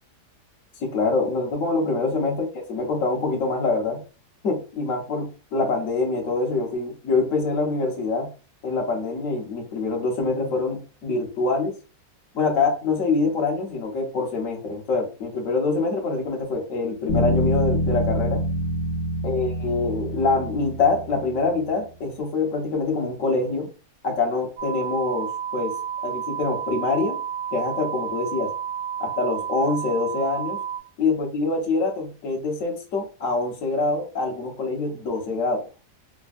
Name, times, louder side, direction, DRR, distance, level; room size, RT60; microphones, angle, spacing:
voice 1, 0.8-4.0 4.4-8.3 8.6-11.7 12.3-18.4 19.2-23.7 24.0-25.7 26.0-27.2 27.5-28.5 29.0-30.6 31.0-35.6, left 3 dB, 55° left, 1 dB, 1.1 m, -25 dB
Bass guitar, 17.1-21.5, equal, 85° left, 1.5 m, -26 dB
sound 1, 24.6-30.8, right 8 dB, 65° right, 0.8 m, -31 dB
3.4 x 2.1 x 2.4 m, 0.33 s
omnidirectional pair, 1.8 m